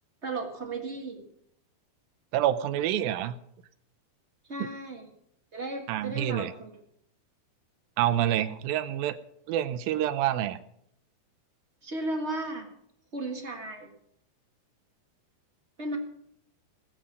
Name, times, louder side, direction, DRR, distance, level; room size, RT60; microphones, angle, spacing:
voice 1, 0.2-1.2 4.5-5.1 5.5-6.7 11.8-12.7 13.1-13.9 15.8-16.0, right 2 dB, 35° right, 2 dB, 1.1 m, -35 dB
voice 2, 2.3-3.4 4.6-4.7 5.9-6.5 8.0-9.2 9.5-10.6, right 12 dB, 80° right, 11 dB, 2.4 m, -27 dB
20.5 x 7.4 x 6.6 m, 0.72 s
omnidirectional pair, 4.3 m